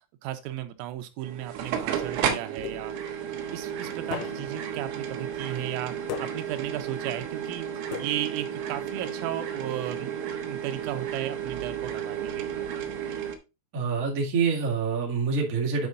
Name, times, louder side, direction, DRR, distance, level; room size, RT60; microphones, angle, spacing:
voice 1, 0.2-3.3 3.5-7.7 8.0-10.1 10.5-12.7, right 12 dB, 90° right, 9 dB, 3.6 m, -35 dB
sound 1, 1.2-13.4, right 8 dB, 75° right, 2.9 m, -33 dB
sound 2, 2.6-3.2 4.1-4.7 6.1-6.7 7.9-8.6, left 10 dB, 85° left, 3.7 m, -38 dB
voice 2, 13.7-15.9, right 5 dB, 35° right, -1 dB, 1.4 m, -26 dB
9.9 x 4.6 x 3.9 m, 0.26 s
omnidirectional pair, 5.7 m